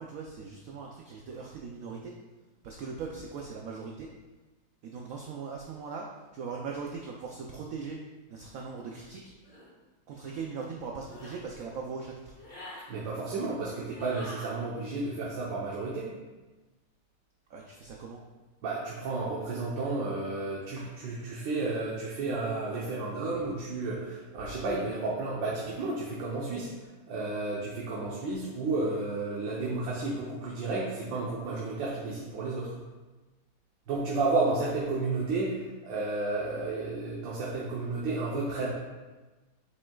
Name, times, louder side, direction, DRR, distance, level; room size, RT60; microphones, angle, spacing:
voice 1, 0.0-2.2 2.6-4.1 4.8-8.0 8.3-9.3 10.1-12.3 17.5-18.2, right 5 dB, 65° right, 0 dB, 0.9 m, -40 dB
sound 1, 9.4-9.7 11.0-11.4 12.3-12.8 13.9-14.5, left 1 dB, 30° left, 1.8 m, -45 dB
voice 2, 12.9-16.1 18.6-26.7 27.1-32.7 33.9-38.7, right 3 dB, 85° right, -5 dB, 1.7 m, -32 dB
8.1 x 5.4 x 2.3 m, 1.2 s
omnidirectional pair, 2.0 m